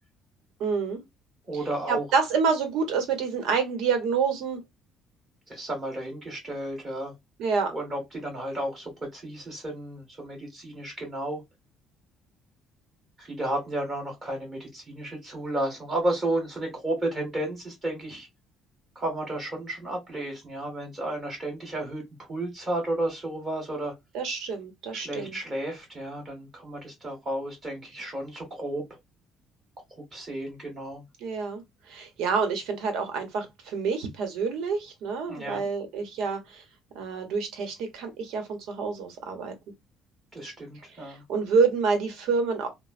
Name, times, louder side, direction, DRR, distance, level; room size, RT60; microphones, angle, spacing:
voice 1, 0.6-1.0 1.9-4.6 7.4-7.7 24.1-25.4 31.2-31.6 31.9-36.6 36.9-39.5 41.0-42.7, right 5 dB, 80° right, 1.0 m, -27 dB
voice 2, 1.5-2.0 5.5-7.1 7.7-11.4 13.2-18.3 19.0-23.9 24.9-28.8 29.9-31.0 35.3-35.7 40.3-41.2, right 1 dB, 30° right, 1.9 m, -32 dB
3.0 x 2.1 x 2.4 m
cardioid pair, 115°, 0 cm